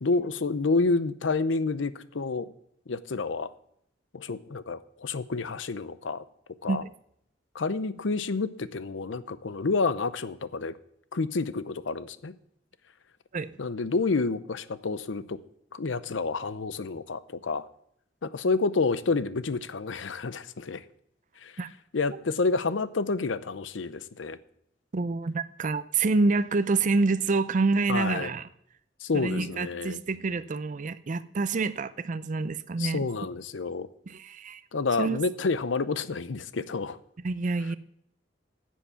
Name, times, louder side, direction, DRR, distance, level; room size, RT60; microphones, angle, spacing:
voice 1, 0.0-2.5 2.9-3.5 4.1-6.2 6.6-6.8 7.5-10.8 11.1-12.3 13.6-15.4 15.7-17.7 18.2-20.8 21.4-21.5 21.9-24.4 27.9-28.3 29.0-30.0 32.8-33.9 34.7-37.0, left 4 dB, 90° left, 14 dB, 0.7 m, -29 dB
voice 2, 24.9-28.5 29.1-33.0 34.1-34.6 35.0-35.2 37.2-37.8, right 3 dB, 45° right, 14 dB, 0.5 m, -27 dB
10.0 x 7.4 x 6.8 m, 0.71 s
head